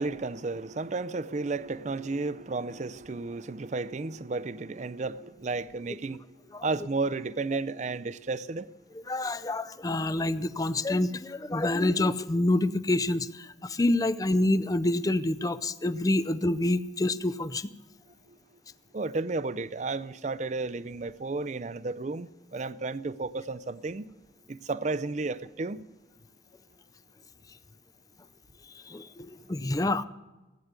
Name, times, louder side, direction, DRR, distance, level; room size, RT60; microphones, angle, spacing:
voice 1, 0.0-6.2 6.6-8.7 18.3-18.4 18.9-24.1 24.5-25.8, right 3 dB, 40° right, 0.5 m, -33 dB
voice 2, 9.1-17.7 28.9-30.0, left 2 dB, 20° left, 0.4 m, -27 dB
16.5 x 9.4 x 8.2 m
head